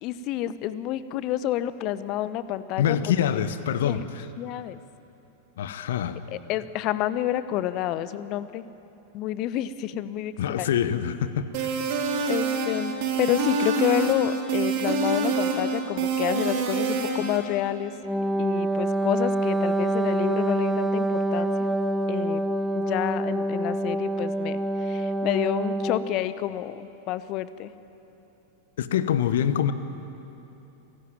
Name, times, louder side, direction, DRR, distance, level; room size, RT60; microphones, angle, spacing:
voice 1, 0.0-3.0 3.3-3.4 3.8-4.0 4.4-4.8 6.3-8.6 9.1-10.7 12.3-17.9 18.4-21.5 22.1-22.4 22.7-27.7, left 13 dB, 40° left, 15 dB, 1.0 m, -29 dB
voice 2, 2.8-4.2 5.6-6.2 10.4-11.8 28.8-29.7, left 9 dB, 60° left, 13 dB, 1.2 m, -25 dB
sound 1, 11.5-17.4, right 4 dB, 45° right, 4.0 m, -26 dB
Wind instrument woodwind instrument, 18.0-26.2, right 1 dB, ahead, 1.1 m, -26 dB
27.0 x 17.0 x 9.2 m, 3.0 s
figure-of-eight pair, 90°, 0 cm